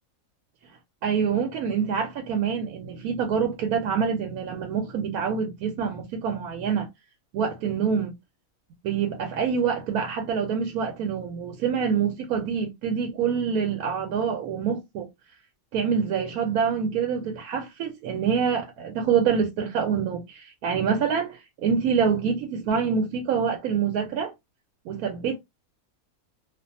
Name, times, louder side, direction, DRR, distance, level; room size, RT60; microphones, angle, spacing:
voice 1, 1.0-6.9 7.3-8.1 8.8-15.1 15.7-24.3 24.9-25.4, right 6 dB, 90° right, 1.1 m, -26 dB
2.5 x 2.3 x 2.6 m
omnidirectional pair, 1.5 m